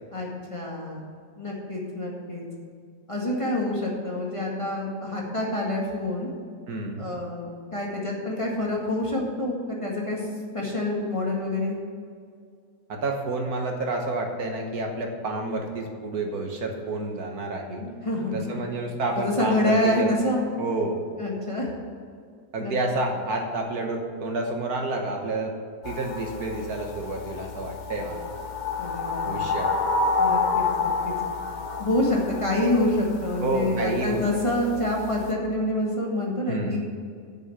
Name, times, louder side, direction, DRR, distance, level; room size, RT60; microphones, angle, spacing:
voice 1, 0.1-1.0 1.4-2.4 3.1-6.3 7.0-10.2 10.5-11.8 17.7-18.6 19.2-20.4 21.2-21.7 22.6-22.7 28.8-29.6 30.2-31.1 31.8-36.8, left 1 dB, 20° left, -3 dB, 1.9 m, -27 dB
voice 2, 6.7-7.0 12.9-17.8 18.3-20.2 20.6-21.0 22.5-25.5 25.8-28.2 29.2-29.7 33.4-34.2 36.5-36.8, right 2 dB, 65° right, 2 dB, 1.7 m, -29 dB
sound 1, 25.8-35.3, left 4 dB, 40° left, 0.7 m, -29 dB
9.0 x 6.8 x 7.9 m, 2.2 s
omnidirectional pair, 1.7 m